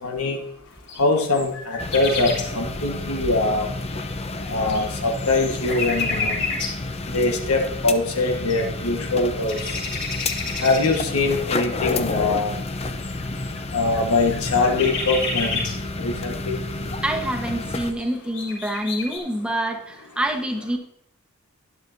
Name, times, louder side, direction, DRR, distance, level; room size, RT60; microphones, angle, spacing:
voice 1, 0.0-0.4 1.0-3.7 4.5-6.4 7.1-9.8 10.6-12.6 13.7-15.7 16.0-16.6, left 3 dB, 85° left, 2 dB, 1.4 m, -23 dB
sound 1, 0.9-2.5 3.8-3.9 4.4-6.9 7.9-8.0 8.2-9.0 9.4-11.1 11.8-11.9 12.5-15.7 17.0-17.1 17.6-17.7 18.0-19.2, left 4 dB, 55° left, 3.5 m, -30 dB
sound 2, 1.8-17.9, left 2 dB, 30° left, 0.7 m, -30 dB
voice 2, 17.0-20.8, right 1 dB, 5° right, 2 dB, 1.1 m, -26 dB
12.0 x 11.5 x 2.7 m, 0.75 s
head